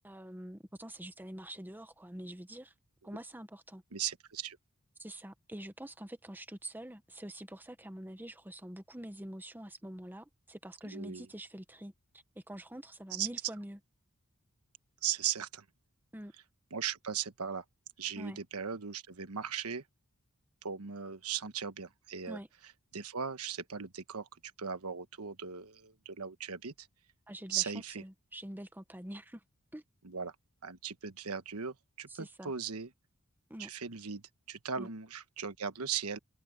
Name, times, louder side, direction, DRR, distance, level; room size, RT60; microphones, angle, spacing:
voice 1, 0.0-2.7 3.0-3.8 5.0-11.9 12.3-13.8 16.1-16.3 18.2-18.4 22.2-22.5 27.3-29.4 29.7-29.8 32.1-32.5 33.5-33.7 34.8-34.9, right 1 dB, 10° right, 1.0 m, -45 dB
voice 2, 3.9-4.6 10.8-11.3 13.1-13.3 15.0-15.6 16.7-17.6 18.0-19.8 20.6-22.4 22.9-24.3 24.6-26.9 27.5-28.0 30.0-30.3 30.6-32.9 33.6-36.2, right 7 dB, 85° right, 1.3 m, -38 dB
open air
head